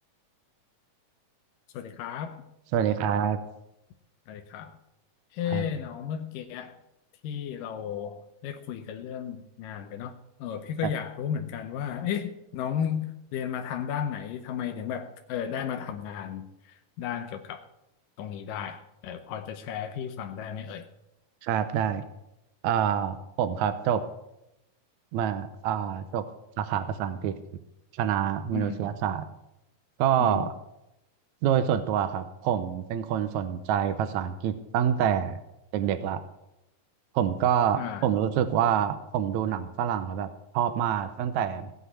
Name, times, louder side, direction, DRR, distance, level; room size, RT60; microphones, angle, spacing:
voice 1, 1.7-2.4 4.3-4.8 5.3-6.8 7.2-17.6 18.2-20.9 28.5-28.8 30.2-30.5 37.8-38.1, left 8 dB, 90° left, 6 dB, 2.5 m, -34 dB
voice 2, 2.7-3.4 5.5-5.7 21.4-22.0 22.6-24.0 25.1-26.2 26.6-27.3 27.9-29.3 30.0-30.5 31.4-35.4 35.7-36.2 37.1-41.7, right 9 dB, 75° right, 10 dB, 1.9 m, -26 dB
18.0 x 6.2 x 8.3 m, 0.87 s
omnidirectional pair, 3.7 m